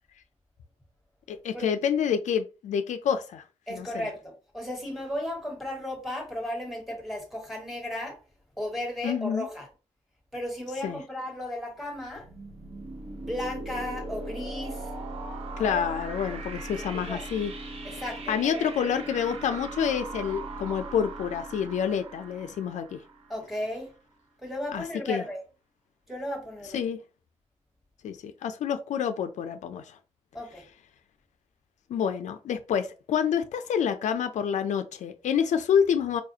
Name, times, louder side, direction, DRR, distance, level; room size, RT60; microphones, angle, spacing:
voice 1, 1.3-3.4 3.7-4.1 9.0-9.5 10.8-11.0 15.6-17.5 18.3-23.0 24.7-25.2 26.7-27.0 28.0-30.0 31.9-36.2, left 8 dB, 75° left, 0.4 m, -28 dB
voice 2, 3.7-8.2 8.6-9.7 10.3-12.3 13.2-14.9 15.6-15.8 16.9-17.2 17.8-18.6 23.3-23.9 24.4-25.4 26.1-26.8 30.3-30.6, left 1 dB, ahead, 1.4 m, -35 dB
sound 1, 12.0-23.7, right 2 dB, 50° right, 0.9 m, -39 dB
4.6 x 2.4 x 2.7 m
wide cardioid pair, 155°, 12 cm